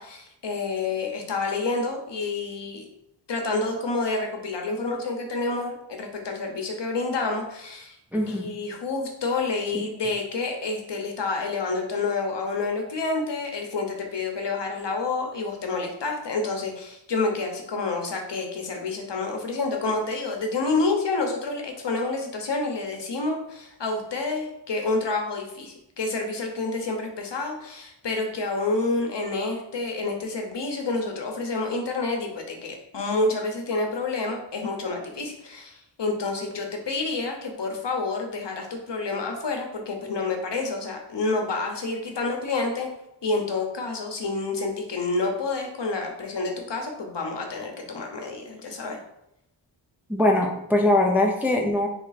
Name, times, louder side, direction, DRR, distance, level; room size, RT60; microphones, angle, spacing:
voice 1, 0.0-2.9 3.3-8.0 8.3-42.9 43.2-49.0, left 3 dB, 60° left, 2 dB, 1.0 m, -28 dB
voice 2, 8.1-8.5 9.7-9.9 50.1-51.9, left 1 dB, 5° right, 1 dB, 0.5 m, -22 dB
3.7 x 3.3 x 4.1 m, 0.83 s
wide cardioid pair, 110°, 47 cm